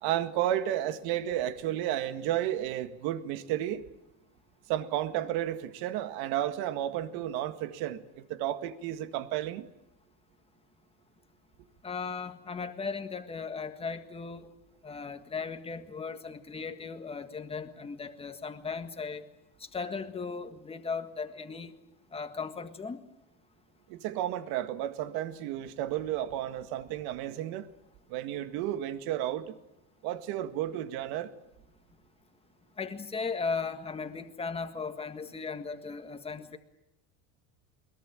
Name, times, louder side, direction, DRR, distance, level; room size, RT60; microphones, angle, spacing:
voice 1, 0.0-3.8 4.7-9.7 23.9-27.7 28.1-29.6 30.0-31.3, right 12 dB, 75° right, 1.9 m, -32 dB
voice 2, 11.8-14.5 14.8-19.2 19.7-21.7 22.1-23.0 32.8-36.6, left 5 dB, 15° left, 1.7 m, -37 dB
22.0 x 22.0 x 9.0 m
cardioid pair, 160°, 38 cm